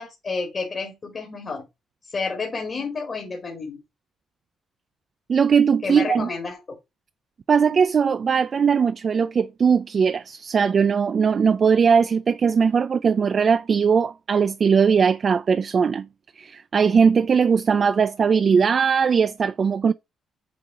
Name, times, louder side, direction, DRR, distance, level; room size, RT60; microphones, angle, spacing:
voice 1, 0.0-1.6 2.0-3.8 5.8-6.8, left 4 dB, 40° left, 2.0 m, -30 dB
voice 2, 5.3-6.3 7.5-16.1 16.4-19.9, right 6 dB, 45° right, 0.3 m, -19 dB
8.4 x 2.8 x 4.8 m
cardioid pair, 90°, 0 cm